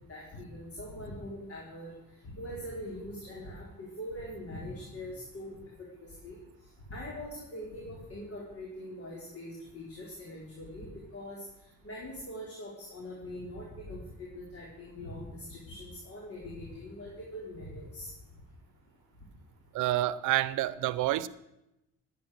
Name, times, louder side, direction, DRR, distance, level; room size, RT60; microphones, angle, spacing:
voice 1, 0.1-1.9 2.3-5.5 6.0-6.4 6.9-10.9 11.1-11.4 11.8-18.1, left 1 dB, 50° left, -3 dB, 4.3 m, -42 dB
voice 2, 19.7-21.3, right 15 dB, 85° right, 17 dB, 0.6 m, -28 dB
15.5 x 9.4 x 6.5 m, 0.90 s
cardioid pair, 90°, 30 cm